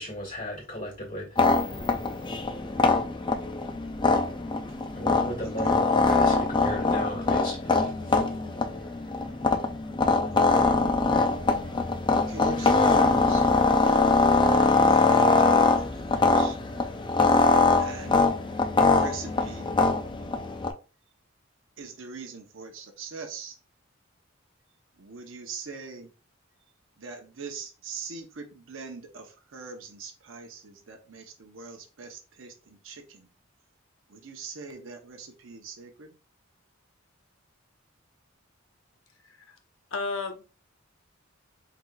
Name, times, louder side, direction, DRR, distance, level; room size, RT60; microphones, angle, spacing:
voice 1, 0.0-1.9 2.5-2.9 4.9-9.5, equal, 45° left, -1 dB, 1.9 m, -38 dB
sound 1, 1.4-20.7, left 3 dB, 25° left, 0.5 m, -23 dB
voice 2, 5.4-5.8 10.3-10.9 12.3-13.4 13.9-16.6 17.8-18.3 18.8-19.7 21.8-23.6 25.0-26.1 27.0-33.3 34.1-36.2, right 4 dB, 70° right, 3 dB, 0.8 m, -42 dB
voice 3, 39.2-39.6 39.9-40.6, left 3 dB, 80° left, 7 dB, 0.8 m, -34 dB
4.7 x 3.9 x 2.3 m, 0.34 s
head